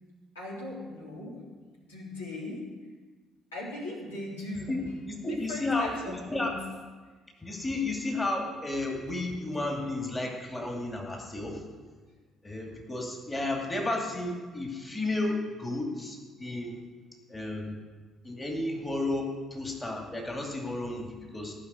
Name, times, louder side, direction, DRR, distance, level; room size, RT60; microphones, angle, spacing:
voice 1, 0.3-1.4 1.8-2.7 3.5-4.8 5.3-6.5, left 2 dB, 85° left, -5 dB, 3.2 m, -39 dB
voice 2, 4.7-6.5 7.4-11.6 12.4-16.8 17.3-17.8 18.2-21.6, left 2 dB, 20° left, 1 dB, 2.6 m, -32 dB
16.0 x 6.0 x 8.1 m, 1.4 s
figure-of-eight pair, 50°, 0 cm